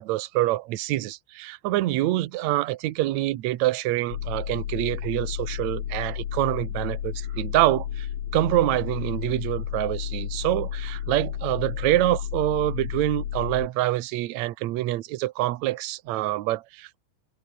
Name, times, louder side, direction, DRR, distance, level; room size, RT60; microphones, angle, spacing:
voice 1, 0.0-8.1 8.3-17.0, right 16 dB, 65° right, 1.9 m, -26 dB
sound 1, 4.1-13.7, left 9 dB, 80° left, 3.9 m, -32 dB
omnidirectional pair, 4.0 m